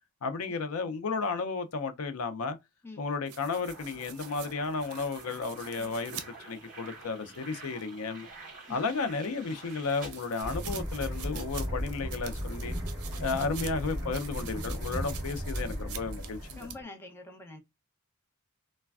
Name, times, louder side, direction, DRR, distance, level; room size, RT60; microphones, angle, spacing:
voice 1, 0.2-2.6 3.0-6.2 6.4-8.3 8.7-12.7 13.2-16.8, left 4 dB, 70° left, 0.5 m, -33 dB
sound 1, 3.3-7.9 8.4-16.7, right 8 dB, 90° right, 0.6 m, -46 dB
sound 2, 3.5-11.3, right 3 dB, 40° right, 1.8 m, -49 dB
sound 3, 10.4-16.8, equal, 15° right, 1.8 m, -36 dB
voice 2, 16.6-17.6, left 2 dB, 10° left, 0.6 m, -46 dB
3.2 x 2.1 x 2.3 m
head